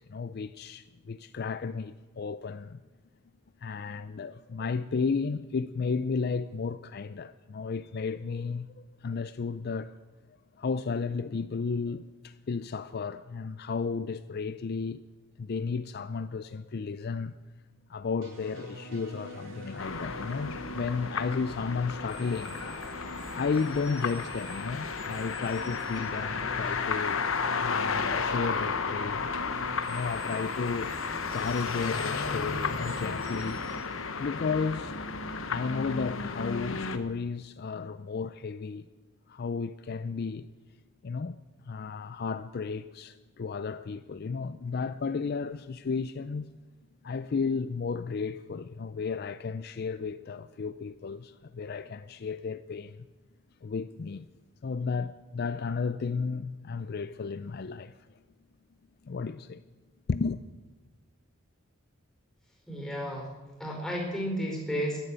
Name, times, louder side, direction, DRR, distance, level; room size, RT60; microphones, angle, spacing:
voice 1, 0.0-2.8 3.6-9.9 10.6-15.1 15.4-17.3 17.9-22.6 23.3-27.3 27.6-29.3 29.9-30.9 31.3-33.6 34.2-35.0 35.5-38.9 39.3-40.5 41.0-46.5 47.0-53.1 53.6-54.3 54.6-57.9 59.0-59.6 60.1-60.4, left 5 dB, 45° left, 0.4 m, -33 dB
sound 1, 18.2-33.7, equal, 70° right, 5.6 m, -44 dB
sound 2, 19.8-37.0, left 5 dB, 70° left, 1.1 m, -33 dB
voice 2, 62.7-63.3 63.6-65.0, equal, 5° left, 4.3 m, -32 dB
13.5 x 10.5 x 8.9 m
head